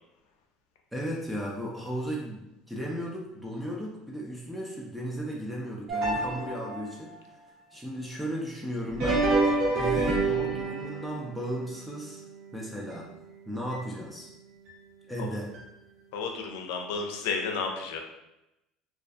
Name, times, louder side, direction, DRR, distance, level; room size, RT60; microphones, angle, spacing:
voice 1, 0.9-7.2 7.7-9.2 9.7-12.2 12.5-13.1 13.5-14.3 15.1-15.5, equal, 5° right, -3 dB, 0.4 m, -35 dB
sound 1, 5.9-7.0 8.9-13.3 13.7-13.8 14.7-14.8 15.5-15.6, right 3 dB, 70° right, 1.0 m, -29 dB
voice 2, 16.1-18.0, left 5 dB, 85° left, 3 dB, 0.4 m, -32 dB
2.4 x 2.3 x 2.4 m, 0.90 s
supercardioid pair, 115°, 0 cm